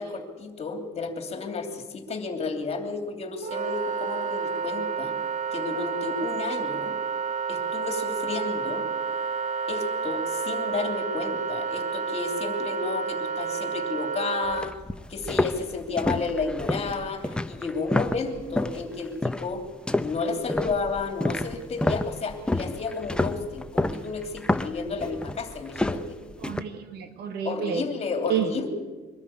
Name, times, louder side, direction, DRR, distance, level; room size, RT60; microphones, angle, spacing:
voice 1, 0.0-5.1 5.5-6.9 7.5-8.8 9.7-14.8 15.1-19.6 20.0-26.0 27.4-28.7, left 4 dB, 40° left, 5 dB, 3.0 m, -32 dB
Wind instrument woodwind instrument, 3.4-14.6, right 6 dB, 50° right, 0.6 m, -30 dB
sound 1, 14.5-18.8 19.2-19.5 19.9-26.6, left 1 dB, 5° left, 0.8 m, -29 dB
voice 2, 26.4-27.8 28.2-28.7, right 7 dB, 75° right, 8 dB, 1.7 m, -29 dB
23.5 x 13.0 x 8.8 m, 1.3 s
cardioid pair, 110°, 17 cm